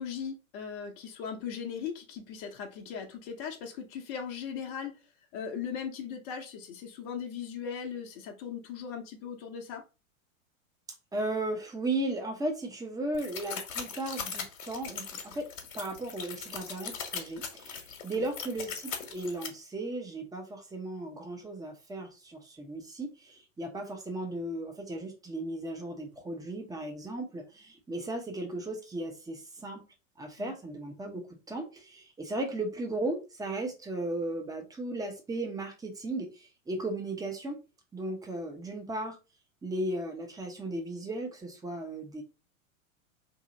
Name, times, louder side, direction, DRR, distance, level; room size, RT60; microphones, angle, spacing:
voice 1, 0.0-5.0 5.3-9.8 18.1-18.2 30.4-30.5, left 7 dB, 45° left, 0.8 m, -38 dB
voice 2, 11.1-29.8 30.2-37.6 37.9-39.2 39.6-42.2, right 2 dB, 10° right, 0.8 m, -36 dB
sound 1, 13.1-19.5, left 6 dB, 65° left, 1.1 m, -39 dB
2.9 x 2.8 x 3.8 m
figure-of-eight pair, 95°, 41 cm